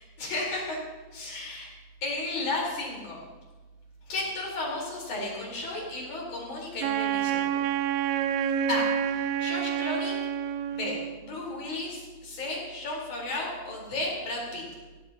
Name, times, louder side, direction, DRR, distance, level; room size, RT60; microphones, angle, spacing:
voice 1, 0.2-0.8 1.1-1.7 2.0-3.2 4.1-7.6 8.7-10.2 10.7-14.6, left 2 dB, 55° left, -4 dB, 5.7 m, -33 dB
Wind instrument woodwind instrument, 6.8-11.2, right 9 dB, 85° right, 2.3 m, -28 dB
17.5 x 17.0 x 3.0 m, 1.2 s
omnidirectional pair, 4.1 m